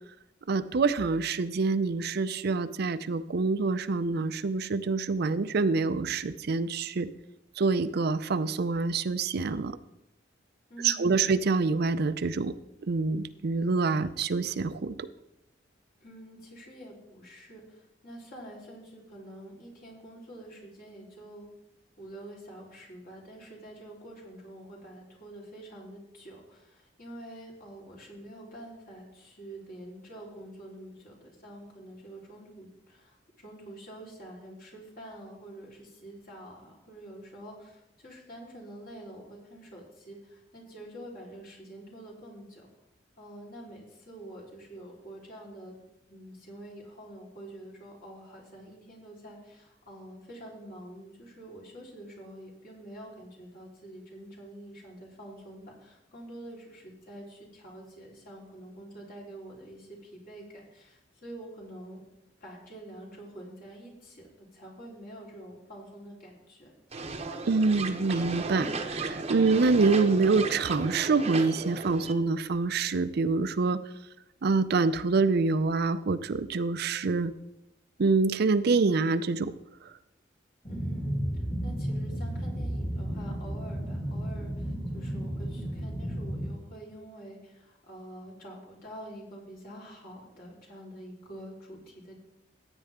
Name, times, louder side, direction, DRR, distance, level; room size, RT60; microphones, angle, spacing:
voice 1, 0.5-7.1 7.6-9.8 10.8-12.5 12.9-15.1 67.5-73.8 74.4-77.3 78.0-79.5, right 4 dB, 60° right, 13 dB, 0.5 m, -26 dB
voice 2, 10.7-11.1 16.0-21.5 22.0-42.7 43.2-45.8 46.1-62.0 62.4-66.7 80.7-92.2, right 1 dB, 50° left, -4 dB, 3.9 m, -47 dB
sound 1, 66.9-72.1, right 3 dB, 35° right, 0.9 m, -35 dB
sound 2, 80.6-86.5, equal, 25° left, 2.2 m, -33 dB
15.5 x 8.9 x 3.7 m, 0.89 s
head